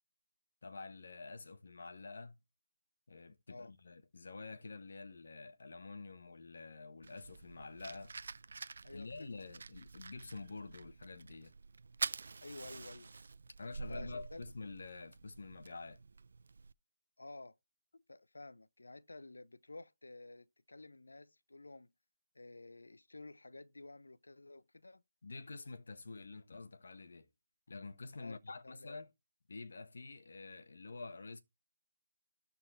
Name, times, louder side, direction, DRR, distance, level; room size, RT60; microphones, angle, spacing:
voice 1, 0.6-2.4 3.1-8.1 8.9-11.5 13.6-16.0 17.9-18.0 25.2-27.3 27.7-29.1 29.5-31.4, left 3 dB, 60° left, 1.4 m, -48 dB
Fire, 7.0-16.7, right 4 dB, 55° right, 0.4 m, -47 dB
voice 2, 8.8-9.4 12.4-13.1 13.9-14.4 17.2-17.6 18.1-21.9 22.3-25.0 28.2-29.0, left 2 dB, 80° left, 0.7 m, -52 dB
13.0 x 4.3 x 4.4 m
figure-of-eight pair, 165°, 0 cm